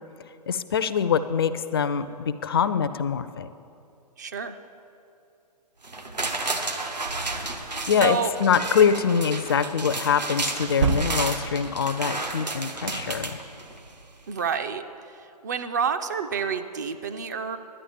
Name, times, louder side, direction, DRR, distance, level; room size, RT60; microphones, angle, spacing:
voice 1, 0.5-3.5 7.9-13.4, left 7 dB, 35° left, 12 dB, 0.4 m, -24 dB
voice 2, 4.2-4.5 8.0-8.3 14.3-14.8 15.4-17.6, right 6 dB, 25° right, 8 dB, 0.4 m, -28 dB
sound 1, 5.8-14.0 14.4-14.5, right 2 dB, 80° right, 1.3 m, -32 dB
sound 2, 8.3-8.5 10.6-11.6, right 6 dB, 45° right, 0.8 m, -27 dB
11.0 x 9.8 x 7.2 m, 2.6 s
figure-of-eight pair, 130°, 21 cm